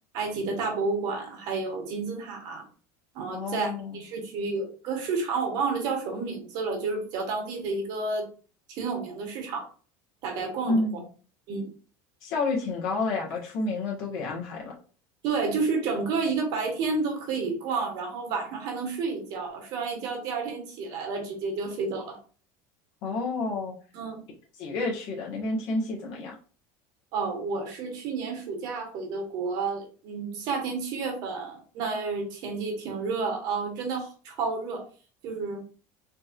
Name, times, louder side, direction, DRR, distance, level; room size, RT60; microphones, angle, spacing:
voice 1, 0.1-2.6 3.1-8.2 8.7-9.7 10.2-10.8 11.5-11.7 15.2-22.2 23.9-24.2 27.1-34.8 35.2-35.6, right 4 dB, 50° right, 2 dB, 1.3 m, -30 dB
voice 2, 3.3-4.0 10.7-10.9 12.2-14.7 23.0-23.7 24.6-26.3, left 3 dB, 55° left, -2 dB, 1.5 m, -29 dB
4.3 x 3.0 x 2.6 m, 0.39 s
cardioid pair, 160°, 8 cm